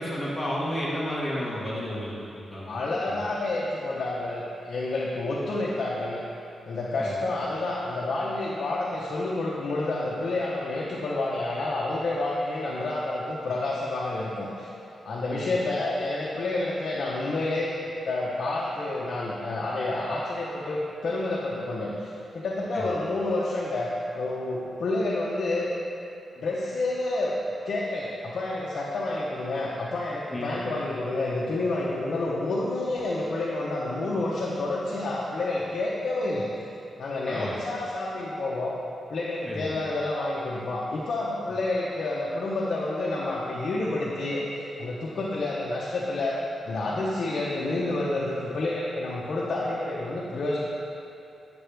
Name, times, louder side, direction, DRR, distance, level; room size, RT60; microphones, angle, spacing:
voice 1, 0.0-2.7 3.0-3.2 7.0-7.2 15.3-15.5 22.7-22.9 30.3-30.6 37.3-37.6 39.4-39.8, equal, 10° left, -8 dB, 1.6 m, -32 dB
voice 2, 2.7-6.2 6.7-14.7 15.0-25.7 26.4-27.3 27.6-36.5 37.0-38.7 39.1-46.4 46.6-50.6, left 2 dB, 60° left, -5 dB, 0.9 m, -29 dB
9.5 x 6.8 x 3.4 m, 2.7 s
wide cardioid pair, 120°, 0 cm